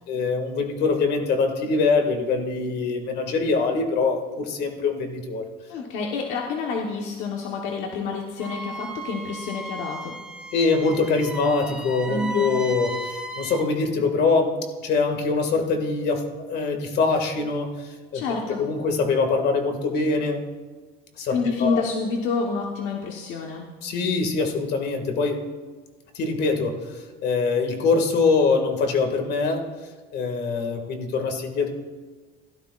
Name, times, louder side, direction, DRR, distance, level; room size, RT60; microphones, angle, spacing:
voice 1, 0.1-5.5 10.5-12.9 13.4-14.5 14.8-18.2 18.6-20.4 21.2-21.4 21.6-21.8 23.8-25.4 26.1-26.7 27.2-29.7 30.1-31.7, left 4 dB, 60° left, 4 dB, 2.0 m, -23 dB
voice 2, 5.7-10.2 12.1-12.6 18.1-18.6 21.3-23.7, left 4 dB, 85° left, 0 dB, 1.2 m, -28 dB
Wind instrument woodwind instrument, 8.4-13.7, right 1 dB, 5° right, 1.0 m, -36 dB
16.5 x 12.5 x 2.5 m, 1.3 s
cardioid pair, 130°, 19 cm